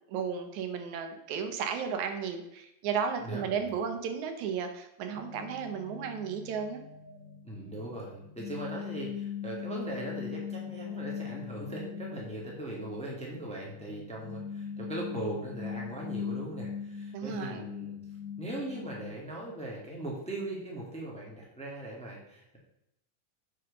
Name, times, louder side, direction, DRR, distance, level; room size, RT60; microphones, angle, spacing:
voice 1, 0.1-6.8 17.1-17.6, right 6 dB, 80° right, 6 dB, 2.4 m, -34 dB
voice 2, 3.2-3.7 7.4-18.0 18.4-22.6, right 1 dB, 5° left, -3 dB, 1.6 m, -39 dB
sound 1, 5.2-19.1, left 7 dB, 70° left, 2.6 m, -41 dB
7.4 x 5.2 x 6.5 m, 0.83 s
omnidirectional pair, 3.3 m